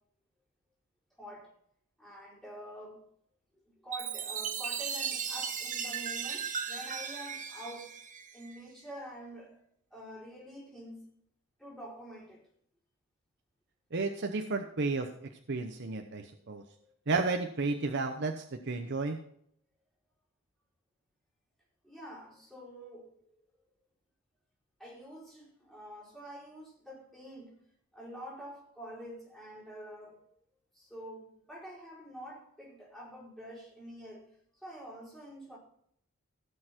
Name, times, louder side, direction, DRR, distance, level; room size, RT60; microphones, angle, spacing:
voice 1, 1.2-1.6 2.0-3.0 3.8-8.0 8.3-9.6 9.9-11.0 11.6-12.5 16.1-16.9 21.8-23.3 24.8-27.5 27.9-30.2 30.7-34.3 34.6-35.6, equal, ahead, 4.8 m, -47 dB
Chime, 3.9-8.6, right 7 dB, 40° right, 1.2 m, -36 dB
voice 2, 13.9-15.1 15.5-16.6 17.1-19.2, right 3 dB, 60° right, 0.9 m, -32 dB
16.5 x 6.8 x 4.4 m
head